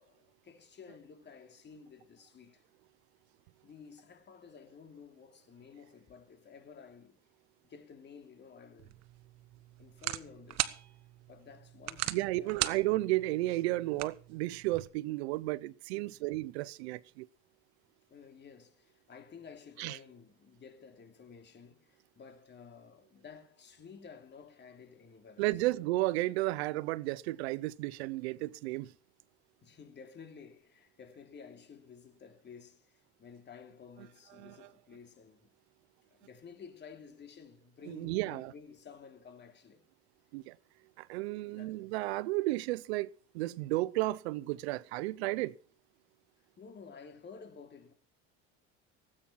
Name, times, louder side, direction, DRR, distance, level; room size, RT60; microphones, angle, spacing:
voice 1, 0.0-2.6 3.6-7.2 7.6-9.0 9.8-10.8 11.3-12.8 15.9-16.2 18.1-25.5 29.6-35.5 36.1-39.8 41.4-41.8 46.6-47.9, left 6 dB, 35° left, 3.0 m, -53 dB
sound 1, 8.8-14.9, right 15 dB, 60° right, 1.2 m, -40 dB
voice 2, 12.1-17.3 19.8-20.0 25.4-28.9 34.4-34.7 37.9-38.5 40.3-40.6 41.0-43.1 43.3-45.5, right 19 dB, 90° right, 0.7 m, -33 dB
18.5 x 8.8 x 5.8 m
supercardioid pair, 105°, 31 cm